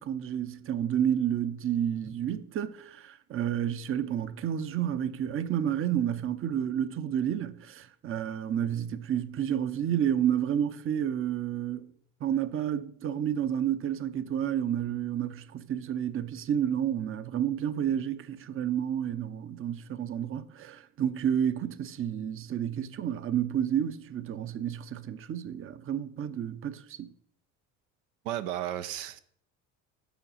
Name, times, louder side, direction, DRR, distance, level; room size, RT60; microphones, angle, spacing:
voice 1, 0.0-11.9 12.2-27.1, right 9 dB, 35° right, 0.6 m, -30 dB
voice 2, 28.2-29.2, right 12 dB, 80° right, 0.6 m, -33 dB
7.1 x 4.8 x 5.6 m
supercardioid pair, 80°, 37 cm